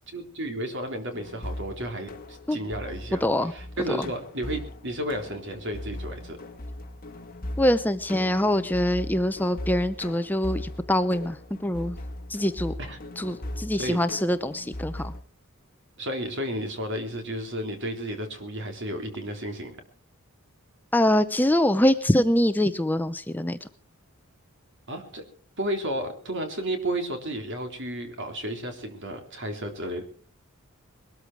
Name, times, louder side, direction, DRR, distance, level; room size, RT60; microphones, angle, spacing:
voice 1, 0.1-3.2 3.5-6.4 12.8-13.0 13.8-14.0 16.0-19.8 24.9-25.2 25.6-30.0, right 1 dB, 55° right, 5 dB, 3.5 m, -32 dB
sound 1, 1.1-15.2, left 1 dB, 40° left, 2.1 m, -39 dB
voice 2, 3.1-3.5 3.9-4.1 7.6-12.0 12.3-12.7 13.2-15.1 20.9-23.7, left 1 dB, 10° left, 10 dB, 0.6 m, -24 dB
21.0 x 13.5 x 4.7 m, 0.43 s
head